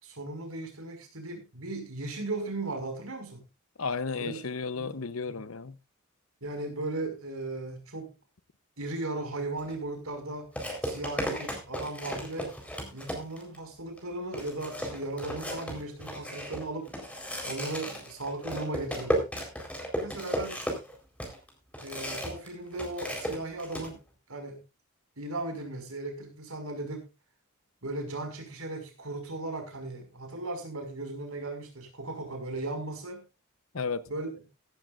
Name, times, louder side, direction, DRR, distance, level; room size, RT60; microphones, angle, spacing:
voice 1, 0.0-3.5 4.2-4.5 4.8-4.9 5.2-5.4 6.4-8.1 8.8-10.5 10.8-12.6 12.9-16.9 17.4-19.3 20.0-20.6 21.8-24.0 24.3-24.6 25.2-27.1 27.8-33.2 34.1-34.3, right 2 dB, 85° right, 5.5 m, -37 dB
voice 2, 3.8-5.8 33.7-34.1, left 4 dB, 70° left, 0.9 m, -33 dB
sound 1, 9.6-9.7 10.6-13.6 14.0-14.1 14.3-22.5 22.7-23.9, equal, 5° left, 4.2 m, -35 dB
15.5 x 14.0 x 2.5 m
head